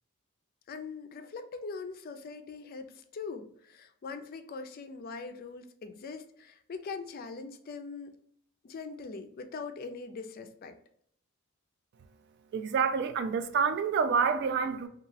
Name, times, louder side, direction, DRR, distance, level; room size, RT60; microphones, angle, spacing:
voice 1, 0.7-8.1 8.6-10.8, left 4 dB, 45° left, 0.4 m, -42 dB
voice 2, 12.5-14.9, right 6 dB, 50° right, 0.3 m, -28 dB
2.9 x 2.3 x 2.6 m
head